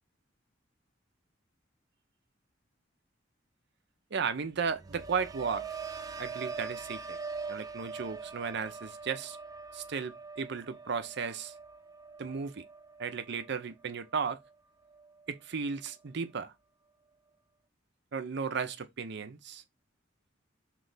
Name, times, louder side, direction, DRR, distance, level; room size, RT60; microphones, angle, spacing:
voice 1, 4.1-5.7 6.2-7.2 7.5-9.4 9.7-11.5 12.2-12.6 13.0-14.4 15.3-16.5 18.1-19.6, right 5 dB, 60° right, 0.6 m, -35 dB
sound 1, 4.5-14.5 14.9-15.3, right 5 dB, 20° right, 0.3 m, -43 dB
3.2 x 3.1 x 3.9 m
head